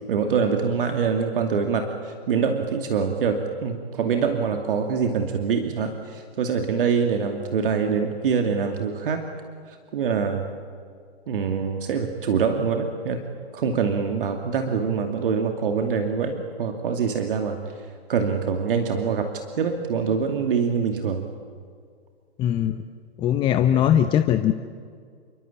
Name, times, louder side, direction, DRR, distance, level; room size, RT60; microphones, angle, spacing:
voice 1, 0.1-9.2 9.9-10.5 11.3-13.2 13.5-17.6 18.1-21.2, right 6 dB, 55° right, 4 dB, 2.6 m, -24 dB
voice 2, 22.4-22.7 23.2-24.5, left 10 dB, 15° left, 8 dB, 0.7 m, -20 dB
29.0 x 24.0 x 8.7 m, 2.1 s
figure-of-eight pair, 130°, 32 cm